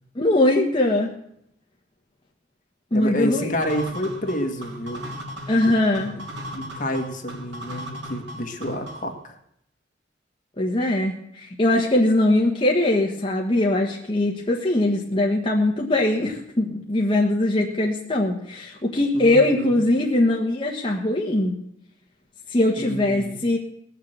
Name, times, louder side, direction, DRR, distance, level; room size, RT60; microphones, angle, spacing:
voice 1, 0.1-1.1 2.9-3.5 5.5-6.1 10.6-21.5 22.5-23.6, left 1 dB, 30° left, -2 dB, 1.4 m, -21 dB
voice 2, 2.9-5.1 5.9-6.2 6.5-9.4 19.1-19.8 22.8-23.4, equal, 45° left, 3 dB, 1.8 m, -29 dB
sound 1, 3.6-9.2, equal, 80° right, 2.9 m, -37 dB
19.0 x 6.8 x 8.0 m, 0.74 s
head